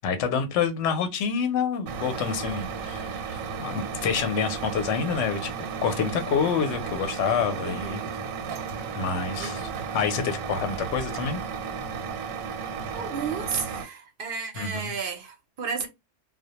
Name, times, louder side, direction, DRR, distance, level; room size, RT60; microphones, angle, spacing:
voice 1, 0.0-5.5 5.8-8.0 8.9-11.4 14.6-14.9, left 6 dB, 65° left, 0.8 m, -27 dB
Truck, 1.9-13.9, right 5 dB, 85° right, 1.0 m, -34 dB
voice 2, 7.6-8.2 9.4-9.8 12.9-15.9, right 5 dB, 55° right, 0.6 m, -33 dB
2.1 x 2.1 x 2.8 m
omnidirectional pair, 1.4 m